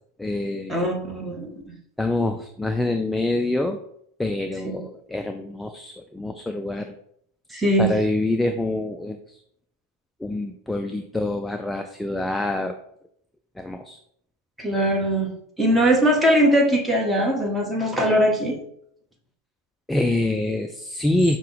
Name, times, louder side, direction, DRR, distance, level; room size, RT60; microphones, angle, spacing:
voice 1, 0.2-0.8 2.0-3.8 4.2-6.9 7.8-9.4 10.2-12.8 13.6-14.0 19.9-21.4, left 2 dB, 5° left, 6 dB, 0.3 m, -26 dB
voice 2, 0.7-1.6 4.6-4.8 7.5-7.9 14.6-15.3 15.6-18.6, equal, 10° right, 0 dB, 1.1 m, -21 dB
5.4 x 2.1 x 3.8 m, 0.70 s
hypercardioid pair, 95°, 0 cm